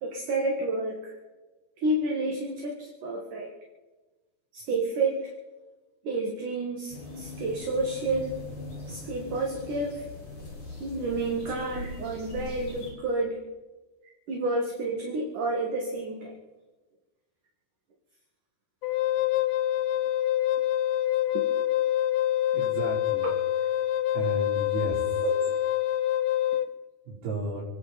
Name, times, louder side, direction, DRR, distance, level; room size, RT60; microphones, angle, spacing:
voice 1, 0.0-1.1 1.8-3.5 4.5-5.2 6.0-8.4 8.9-10.0 10.8-13.4 14.3-16.3 21.3-21.4 23.2-23.3 25.2-25.4, right 2 dB, 55° right, -1 dB, 3.2 m, -30 dB
sound 1, 6.9-12.9, left 2 dB, 40° left, 7.6 m, -41 dB
Wind instrument woodwind instrument, 18.8-26.7, left 12 dB, 85° left, 1.7 m, -26 dB
voice 2, 22.5-23.3 24.1-25.0 27.1-27.6, right 2 dB, 85° right, -9 dB, 6.1 m, -33 dB
28.5 x 11.0 x 4.3 m, 1.2 s
omnidirectional pair, 4.5 m